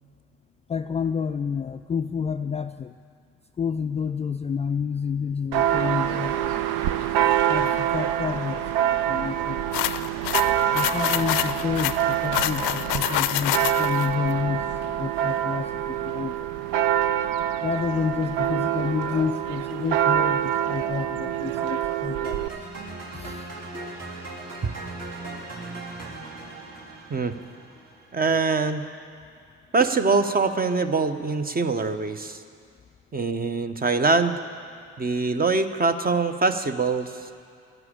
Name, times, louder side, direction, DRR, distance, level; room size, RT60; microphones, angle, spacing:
voice 1, 0.7-2.9 3.6-6.5 7.5-9.7 10.7-16.5 17.6-22.4 23.1-23.5, left 6 dB, 20° left, 9 dB, 0.4 m, -29 dB
Church bell, 5.5-22.5, right 10 dB, 70° right, 0.7 m, -25 dB
sound 1, 9.7-14.1, left 16 dB, 65° left, 0.5 m, -27 dB
sound 2, 22.2-28.4, right 2 dB, 45° right, 3.3 m, -38 dB
voice 2, 28.1-28.8 29.7-32.4 33.1-34.4 35.0-37.1, right 4 dB, 25° right, 9 dB, 1.0 m, -23 dB
12.0 x 11.0 x 8.8 m, 2.4 s
hypercardioid pair, 50°, 35 cm